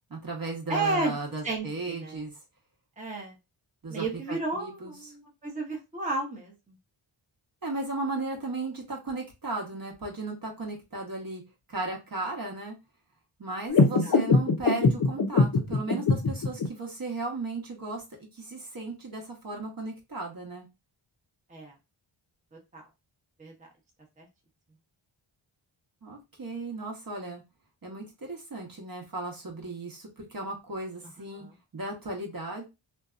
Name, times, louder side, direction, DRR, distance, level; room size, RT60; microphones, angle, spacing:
voice 1, 0.1-2.3 3.8-4.9 7.6-11.4 11.7-12.7 13.4-18.0 18.3-20.7 26.0-27.4 27.8-31.5 31.7-32.7, right 2 dB, 45° right, 0 dB, 1.0 m, -36 dB
voice 2, 0.7-1.1 1.4-2.2 3.0-3.4 3.9-6.8 13.8-14.2 21.5-21.7 22.5-22.9 23.4-23.5 24.2-24.3 31.3-31.5, right 2 dB, 15° right, -1 dB, 0.8 m, -33 dB
sound 1, 13.7-16.7, left 3 dB, 45° left, 0.6 m, -23 dB
2.5 x 2.3 x 2.4 m, 0.25 s
wide cardioid pair, 75°, 49 cm